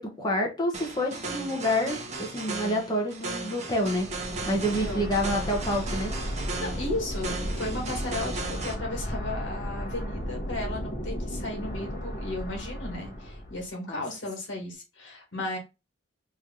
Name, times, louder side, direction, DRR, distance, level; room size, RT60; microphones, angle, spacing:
voice 1, 0.0-6.1 13.9-14.0, left 1 dB, 20° left, 0.8 m, -28 dB
sound 1, 0.7-8.7, right 3 dB, 35° right, 0.8 m, -36 dB
sound 2, 3.8-13.7, equal, 45° left, 1.0 m, -34 dB
voice 2, 4.6-5.1 6.4-15.6, left 2 dB, 75° left, 1.6 m, -35 dB
3.2 x 2.7 x 3.7 m
head